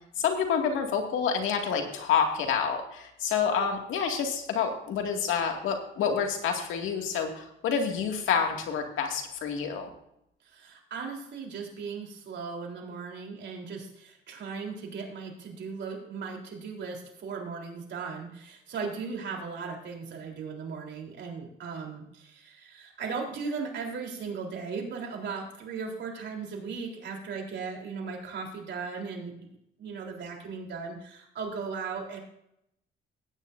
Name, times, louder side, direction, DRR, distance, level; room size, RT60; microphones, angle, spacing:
voice 1, 0.2-9.9, left 6 dB, 85° left, 3 dB, 2.1 m, -28 dB
voice 2, 10.4-29.5 29.8-32.2, right 5 dB, 65° right, 0 dB, 3.7 m, -37 dB
17.5 x 9.5 x 2.6 m, 0.77 s
cardioid pair, 90°, 20 cm